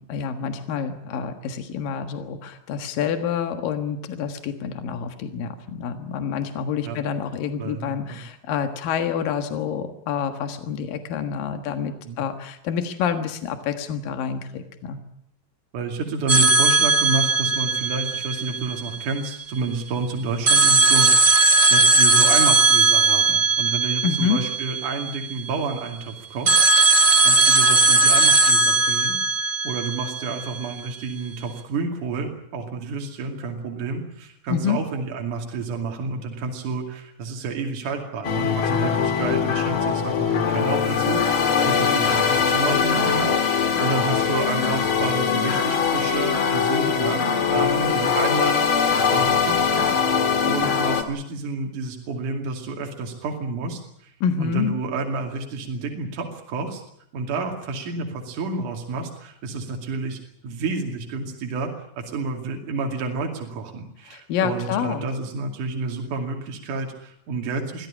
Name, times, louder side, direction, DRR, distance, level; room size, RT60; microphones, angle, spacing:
voice 1, 0.0-15.0 24.0-24.4 34.5-34.8 54.2-54.8 64.1-65.1, left 7 dB, 80° left, 8 dB, 3.3 m, -27 dB
voice 2, 7.6-8.2 12.1-12.2 15.7-21.4 21.7-54.1 54.4-56.8 57.1-67.9, right 4 dB, 65° right, 2 dB, 3.9 m, -30 dB
sound 1, 16.3-19.2 20.5-25.4 26.5-30.6, right 3 dB, 25° right, 1.5 m, -18 dB
sound 2, 38.2-51.0, left 6 dB, 45° left, 2.3 m, -22 dB
23.5 x 15.5 x 10.0 m, 0.70 s
omnidirectional pair, 4.0 m